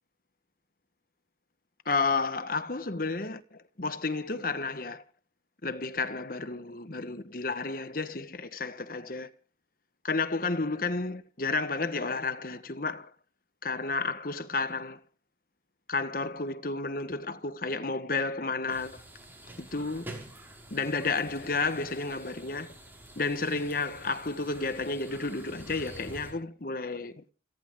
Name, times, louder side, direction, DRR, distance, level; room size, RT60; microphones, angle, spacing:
voice 1, 1.8-5.0 5.6-9.3 10.0-13.1 13.6-15.0 15.9-19.0 19.6-20.1 20.7-22.7 23.2-27.2, left 3 dB, 50° left, 1.3 m, -31 dB
sound 1, 18.7-26.3, right 1 dB, 10° right, 5.4 m, -48 dB
29.5 x 10.5 x 3.7 m
head